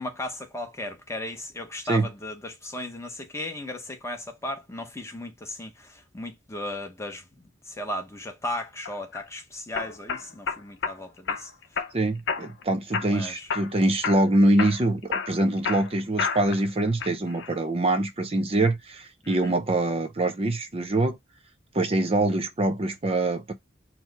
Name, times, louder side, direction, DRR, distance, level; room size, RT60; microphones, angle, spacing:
voice 1, 0.0-11.5 13.0-13.5 19.2-19.6, left 1 dB, 15° left, 0.8 m, -36 dB
sound 1, 8.9-9.2 9.8-11.0 11.3-11.9 12.3-12.6 12.9-13.7 14.0-14.3 14.6-16.6 17.0-17.5, left 5 dB, 70° left, 0.6 m, -30 dB
voice 2, 11.9-21.2 21.7-23.5, right 2 dB, 30° right, 0.6 m, -24 dB
4.6 x 2.0 x 4.5 m
head